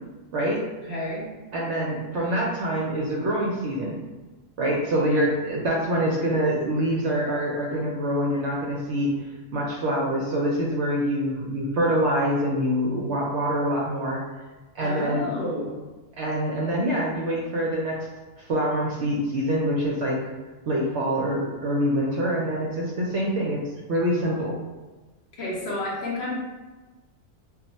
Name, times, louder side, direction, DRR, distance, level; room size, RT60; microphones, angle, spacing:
voice 1, 0.3-0.6 1.5-4.0 4.6-14.2 14.7-15.3 16.2-18.1 18.4-20.2 20.7-23.6 23.9-24.6, equal, 65° right, -3 dB, 0.7 m, -25 dB
voice 2, 0.8-1.3 5.1-5.2 14.8-15.8 25.4-26.4, left 1 dB, 60° left, -5 dB, 0.8 m, -30 dB
2.3 x 2.1 x 3.9 m, 1.2 s
omnidirectional pair, 1.4 m